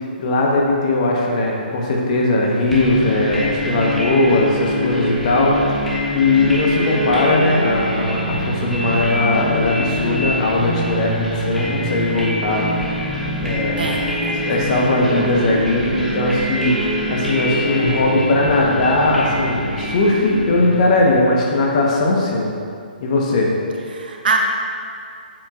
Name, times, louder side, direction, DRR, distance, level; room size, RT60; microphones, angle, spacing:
voice 1, 0.2-5.5 6.1-12.7 13.4-13.8 14.4-22.5 23.0-23.5, left 2 dB, 45° left, -2 dB, 1.3 m, -18 dB
sound 1, 2.7-21.4, equal, 5° left, 1.2 m, -24 dB
voice 2, 13.8-14.4 23.9-24.4, right 5 dB, 65° right, 1 dB, 1.0 m, -23 dB
7.5 x 7.0 x 2.6 m, 2.4 s
figure-of-eight pair, 135°, 5 cm